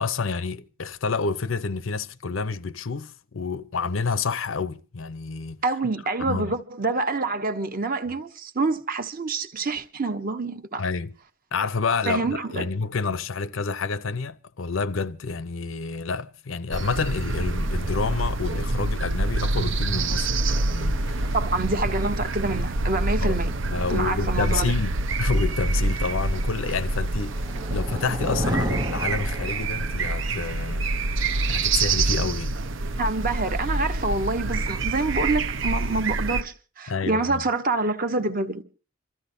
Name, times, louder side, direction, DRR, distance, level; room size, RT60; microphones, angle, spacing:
voice 1, 0.0-5.6 6.2-6.5 10.8-11.1 11.5-21.3 23.2-23.4 23.7-30.9 31.1-32.6 36.9-37.4, left 4 dB, 75° left, 0.7 m, -29 dB
voice 2, 5.6-10.8 12.1-12.7 21.3-23.5 23.9-24.7 33.0-38.6, right 3 dB, 45° right, 1.0 m, -27 dB
sound 1, 16.7-36.4, right 2 dB, 65° right, 0.7 m, -26 dB
sound 2, 27.1-30.0, right 1 dB, 20° right, 0.7 m, -30 dB
27.5 x 13.5 x 2.7 m
head